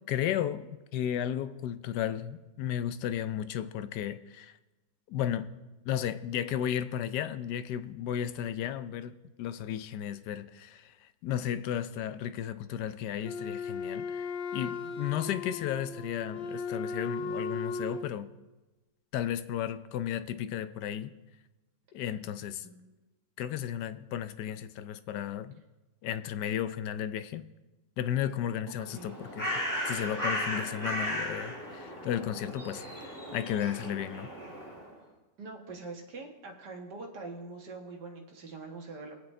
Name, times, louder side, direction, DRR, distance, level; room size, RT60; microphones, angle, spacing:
voice 1, 0.1-4.5 5.1-5.6 5.9-9.1 9.4-14.3 14.5-18.3 19.1-21.1 21.9-22.7 23.4-25.6 26.0-27.5 28.0-29.5 29.9-34.3, left 10 dB, 75° left, 1.2 m, -34 dB
Wind instrument woodwind instrument, 13.2-18.1, left 4 dB, 55° left, 0.6 m, -36 dB
voice 2, 15.1-15.4 22.6-22.8 28.9-29.2 35.4-39.1, right 3 dB, 70° right, 2.2 m, -44 dB
Bird, 28.8-34.9, equal, 10° left, 2.5 m, -36 dB
23.5 x 8.1 x 3.3 m
omnidirectional pair, 1.9 m